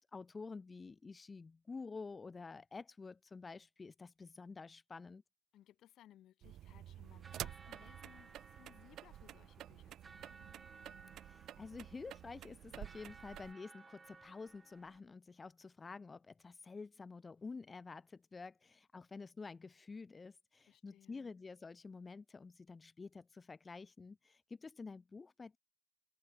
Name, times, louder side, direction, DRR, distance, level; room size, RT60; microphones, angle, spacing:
voice 1, 0.0-5.2 11.2-25.6, left 4 dB, 30° left, 0.8 m, -50 dB
voice 2, 5.5-10.6 20.7-21.4, left 12 dB, 80° left, 3.7 m, -64 dB
sound 1, 6.4-13.5, right 12 dB, 80° right, 0.6 m, -51 dB
sound 2, 7.0-15.0, right 4 dB, 30° right, 0.3 m, -60 dB
open air
cardioid pair, 90°, 0 cm